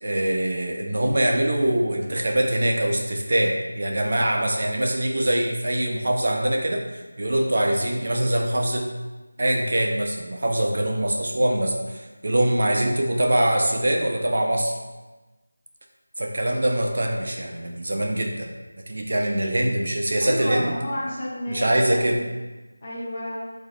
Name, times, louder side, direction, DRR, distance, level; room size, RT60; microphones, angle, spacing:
voice 1, 0.0-8.9 9.4-14.8 16.2-18.5 18.9-20.7 21.5-22.2, right 1 dB, 40° right, 1 dB, 0.4 m, -23 dB
voice 2, 20.2-22.1 22.8-23.4, equal, 20° left, -5 dB, 0.6 m, -30 dB
3.2 x 2.5 x 4.0 m, 1.2 s
figure-of-eight pair, 180°, 0 cm